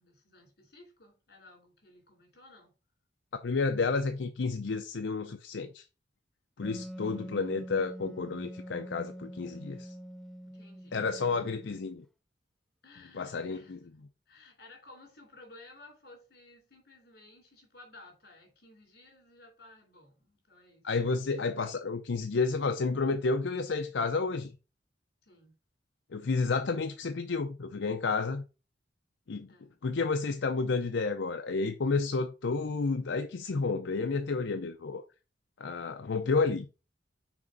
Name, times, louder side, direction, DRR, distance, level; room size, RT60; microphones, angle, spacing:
voice 1, 0.0-2.7 10.4-11.5 12.8-20.9 25.2-25.6 29.5-29.7, left 2 dB, 60° left, 3.3 m, -56 dB
voice 2, 3.4-5.8 6.6-9.9 10.9-12.0 13.1-13.8 20.8-24.5 26.1-28.4 29.3-29.5 29.8-35.0 35.6-36.7, left 4 dB, 80° left, 0.6 m, -31 dB
Wind instrument woodwind instrument, 6.6-12.0, equal, 5° left, 0.5 m, -45 dB
6.1 x 4.2 x 5.2 m
head